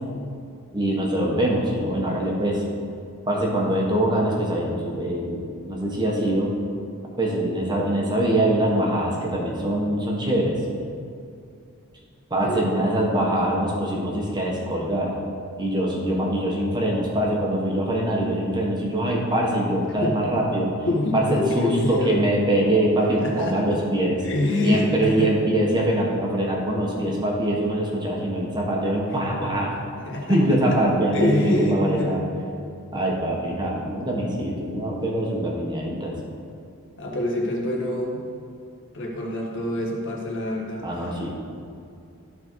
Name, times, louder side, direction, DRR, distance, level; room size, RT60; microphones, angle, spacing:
voice 1, 0.7-2.6 3.3-6.5 7.2-10.6 12.3-15.1 15.6-20.7 21.1-24.2 24.6-29.7 30.3-32.2 32.9-36.2 40.8-41.3, right 1 dB, 20° right, -2 dB, 1.3 m, -23 dB
voice 2, 20.9-22.2 23.2-23.8 24.2-25.3 30.0-30.4 30.7-30.8 31.1-32.1 37.0-38.2 38.9-41.1, left 1 dB, 55° left, -1 dB, 1.5 m, -25 dB
12.5 x 4.3 x 4.6 m, 2.5 s
head